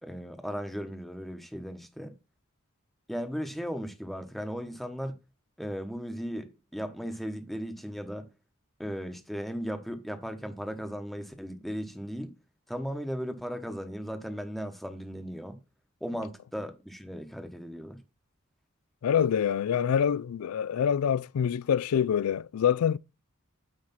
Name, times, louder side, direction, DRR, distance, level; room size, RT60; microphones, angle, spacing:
voice 1, 0.0-2.1 3.1-5.2 5.6-8.3 8.8-12.3 12.7-15.6 16.0-18.0, equal, ahead, 1.0 m, -36 dB
voice 2, 19.0-23.0, left 8 dB, 90° left, 0.3 m, -26 dB
9.1 x 3.2 x 5.8 m
head